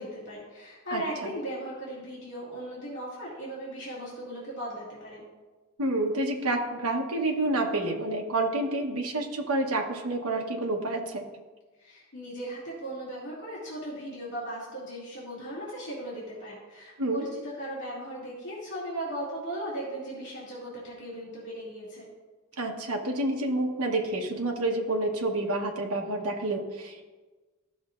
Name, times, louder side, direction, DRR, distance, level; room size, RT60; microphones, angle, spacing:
voice 1, 0.0-5.2 11.8-22.1, right 1 dB, 55° left, -7 dB, 2.4 m, -37 dB
voice 2, 0.9-1.3 5.8-11.2 17.0-17.2 22.6-27.0, right 2 dB, 80° right, 2 dB, 1.1 m, -29 dB
14.0 x 6.4 x 2.5 m, 1.3 s
head